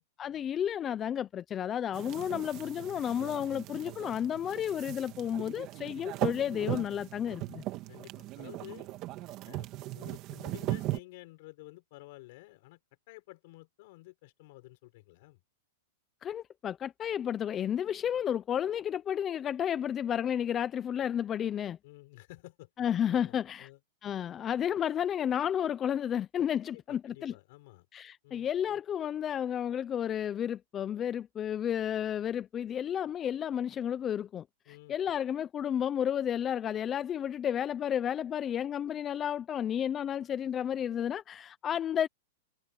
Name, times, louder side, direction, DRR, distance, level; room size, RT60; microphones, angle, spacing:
voice 1, 0.2-7.6 16.2-21.8 22.8-23.7 24.0-27.3 27.9-42.1, left 9 dB, 20° left, 0.4 m, -32 dB
sound 1, 1.9-11.0, right 17 dB, 30° right, 2.1 m, -38 dB
voice 2, 7.9-8.9 9.4-9.7 9.9-12.8 13.1-15.4 21.8-22.7 23.1-23.8 26.6-27.9 28.2-28.5 34.7-35.0, left 21 dB, 50° left, 6.1 m, -51 dB
supercardioid pair, 160°, 0 cm